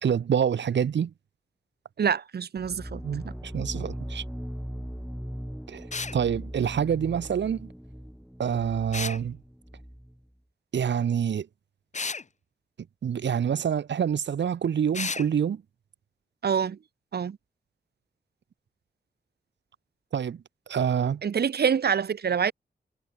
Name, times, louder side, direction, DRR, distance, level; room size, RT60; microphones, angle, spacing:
voice 1, 0.0-1.1 3.0-4.2 5.7-5.9 6.1-7.7 8.4-9.4 10.7-11.5 13.0-15.6 20.1-20.4 20.7-21.2, right 8 dB, 90° right, 2.0 m, -26 dB
voice 2, 2.0-3.0 16.4-16.8 17.1-17.4 21.2-22.5, right 7 dB, 65° right, 1.4 m, -26 dB
sound 1, 2.6-10.2, equal, ahead, 2.5 m, -39 dB
sound 2, 5.9-6.2 8.9-9.2 11.9-12.2 14.9-15.3, left 4 dB, 40° left, 4.9 m, -32 dB
wide cardioid pair, 135°, 18 cm